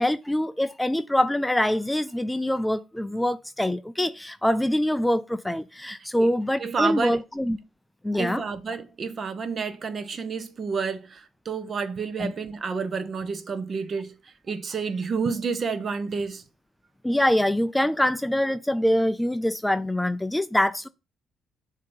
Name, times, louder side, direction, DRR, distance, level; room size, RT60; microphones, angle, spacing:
voice 1, 0.0-7.6 8.0-8.4 12.2-12.3 17.0-20.9, left 1 dB, 10° left, 0.3 m, -24 dB
voice 2, 6.6-7.2 8.2-14.1 14.5-16.4, right 5 dB, 45° right, 0.8 m, -29 dB
6.4 x 2.8 x 5.3 m
cardioid pair, 90°, 0 cm